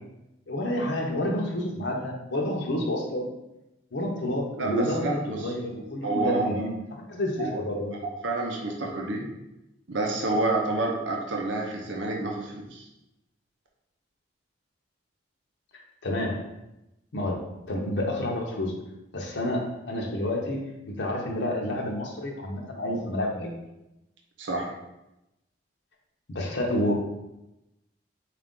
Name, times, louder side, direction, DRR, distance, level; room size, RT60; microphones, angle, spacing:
voice 1, 0.5-3.3 3.9-6.8 7.1-7.9 16.0-16.4 17.1-17.4 17.7-18.7 19.1-23.5 26.3-26.9, left 1 dB, 70° left, 0 dB, 0.7 m, -29 dB
voice 2, 4.6-5.4 6.0-6.7 7.4-7.6 8.2-9.3 9.9-12.9 24.4-24.7, right 2 dB, 80° right, -1 dB, 0.6 m, -28 dB
4.5 x 2.5 x 3.6 m, 0.92 s
head